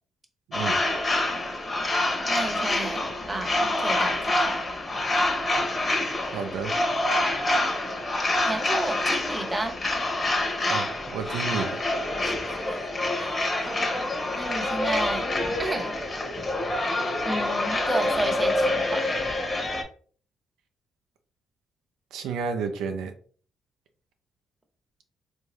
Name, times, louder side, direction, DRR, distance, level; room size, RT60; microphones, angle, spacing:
sound 1, 0.5-19.8, left 2 dB, 30° left, 0.9 m, -26 dB
voice 1, 2.3-4.5 8.4-9.8 10.2-10.3 11.3-11.4 12.2-12.9 13.2-13.8 14.4-15.3 15.6-15.9 17.2-19.1, right 1 dB, 10° right, 3 dB, 0.8 m, -32 dB
voice 2, 6.3-6.7 10.6-11.8 22.1-23.1, right 6 dB, 85° right, 5 dB, 0.5 m, -31 dB
3.5 x 2.6 x 3.1 m, 0.43 s
cardioid pair, 90°, 0 cm